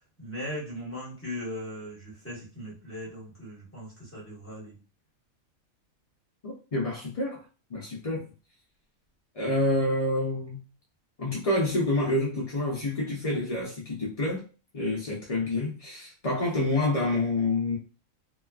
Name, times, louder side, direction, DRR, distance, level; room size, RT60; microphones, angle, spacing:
voice 1, 0.0-4.8, left 1 dB, 10° left, -5 dB, 1.2 m, -39 dB
voice 2, 6.4-7.4 7.7-8.3 9.3-10.6 11.2-14.4 14.7-17.8, left 2 dB, 55° left, -4 dB, 0.4 m, -28 dB
2.9 x 2.3 x 2.3 m, 0.35 s
omnidirectional pair, 1.5 m